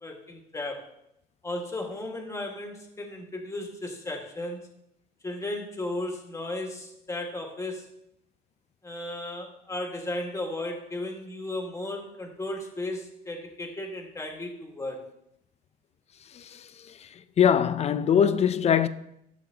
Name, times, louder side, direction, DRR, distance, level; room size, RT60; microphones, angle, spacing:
voice 1, 0.0-0.9 1.4-4.7 5.2-7.9 8.8-15.1, left 1 dB, 15° left, 1.8 m, -35 dB
voice 2, 16.3-16.7 17.0-17.1 17.4-18.9, left 8 dB, 40° left, 0.5 m, -22 dB
12.5 x 7.4 x 2.9 m
cardioid pair, 110°, 17 cm